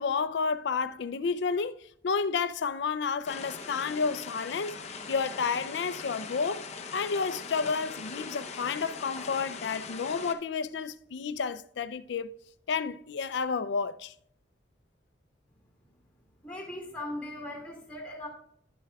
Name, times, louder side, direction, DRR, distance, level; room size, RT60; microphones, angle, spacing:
voice 1, 0.0-1.8 2.0-4.8 5.1-6.7 6.9-12.3 12.7-14.1, left 5 dB, 75° left, 0.4 m, -31 dB
sound 1, 3.2-10.3, left 4 dB, 35° left, 0.6 m, -41 dB
voice 2, 16.4-18.3, left 1 dB, 5° left, 2.0 m, -39 dB
10.5 x 8.1 x 2.3 m
head